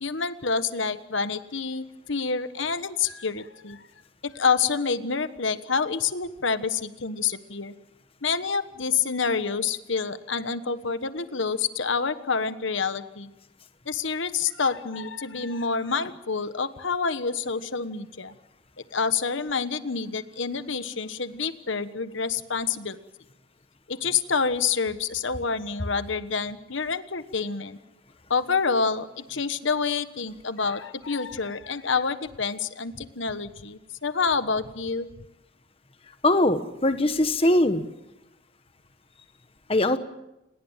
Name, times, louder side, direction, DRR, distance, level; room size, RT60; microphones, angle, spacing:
voice 1, 0.0-3.8 4.2-7.7 8.2-13.3 13.9-18.3 18.9-23.0 23.9-27.8 28.3-35.1, left 5 dB, 70° left, 11 dB, 1.3 m, -28 dB
voice 2, 36.2-37.8 39.7-40.0, left 1 dB, 30° left, 9 dB, 1.3 m, -21 dB
29.0 x 20.5 x 7.4 m, 0.93 s
head